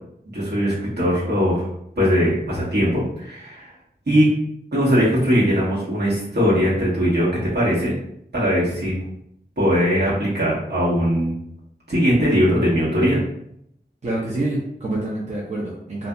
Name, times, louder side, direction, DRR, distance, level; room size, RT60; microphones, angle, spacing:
voice 1, 0.3-1.7 2.0-3.7 4.1-4.3 4.7-7.9 8.3-8.9 9.6-11.3 11.9-13.2, equal, 70° right, -8 dB, 1.2 m, -20 dB
voice 2, 14.0-16.1, right 2 dB, 40° right, -5 dB, 0.6 m, -27 dB
2.7 x 2.4 x 2.3 m, 0.75 s
wide cardioid pair, 55°, 18 cm